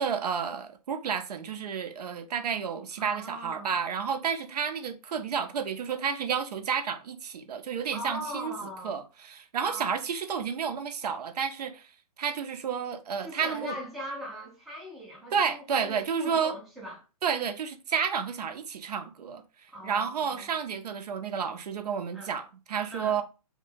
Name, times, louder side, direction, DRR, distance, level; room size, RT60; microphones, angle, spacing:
voice 1, 0.0-8.5 8.8-11.9 12.2-13.8 15.3-16.5 17.2-19.4 19.8-23.2, right 7 dB, 85° right, 0.5 m, -31 dB
voice 2, 3.0-3.7 7.9-9.0 9.6-9.9 13.2-17.0 19.7-20.5 22.1-22.3 22.9-23.2, equal, ahead, 0.3 m, -40 dB
2.1 x 2.1 x 3.1 m
hypercardioid pair, 150°, 20 cm